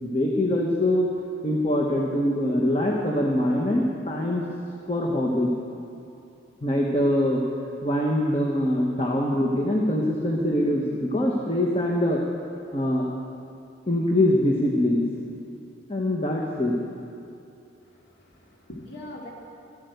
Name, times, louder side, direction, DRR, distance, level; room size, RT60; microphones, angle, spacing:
voice 1, 0.0-1.1 1.4-4.4 4.9-5.5 6.6-7.4 7.8-12.2 12.7-13.1 13.9-15.1 15.9-16.8, left 1 dB, 30° left, -1 dB, 1.1 m, -23 dB
voice 2, 17.8-19.3, left 1 dB, 60° left, -2 dB, 2.3 m, -42 dB
13.0 x 11.5 x 7.9 m, 2.6 s
head